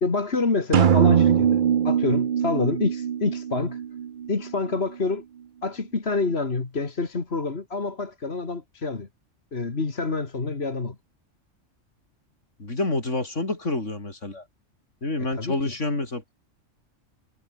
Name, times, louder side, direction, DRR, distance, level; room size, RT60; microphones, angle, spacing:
voice 1, 0.0-3.8 4.3-5.2 5.6-9.1 9.5-11.0 15.2-15.7, left 3 dB, 55° left, 2.5 m, -27 dB
sound 1, 0.7-4.5, right 8 dB, 50° right, 0.7 m, -22 dB
voice 2, 12.6-14.4 15.0-16.3, left 2 dB, 70° left, 4.8 m, -28 dB
omnidirectional pair, 1.3 m